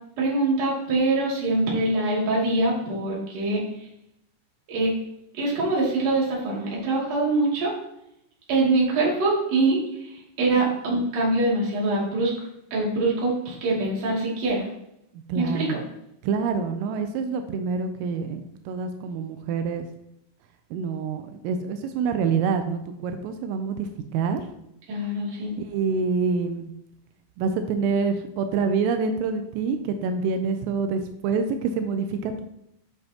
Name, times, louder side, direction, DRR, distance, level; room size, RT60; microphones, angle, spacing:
voice 1, 0.2-3.9 4.7-5.0 5.3-7.7 8.5-12.3 12.7-14.7 15.3-15.8 24.9-25.5, right 2 dB, 40° right, -5 dB, 2.9 m, -24 dB
voice 2, 15.3-15.8 16.2-19.9 20.7-24.4 25.6-26.7 27.4-32.5, right 5 dB, 85° right, 7 dB, 3.3 m, -26 dB
9.4 x 7.8 x 2.9 m, 0.79 s
omnidirectional pair, 5.8 m